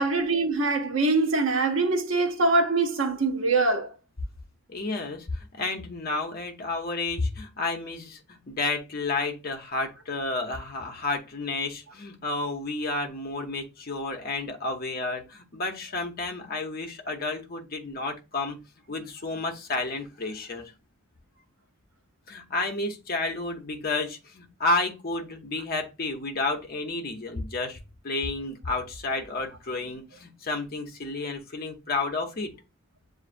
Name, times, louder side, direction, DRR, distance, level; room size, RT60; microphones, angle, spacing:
voice 1, 0.0-3.9, right 3 dB, 60° right, 0.8 m, -23 dB
voice 2, 4.7-18.6 18.9-20.6 22.3-32.5, left 3 dB, 45° left, 0.7 m, -31 dB
7.2 x 2.5 x 2.5 m
head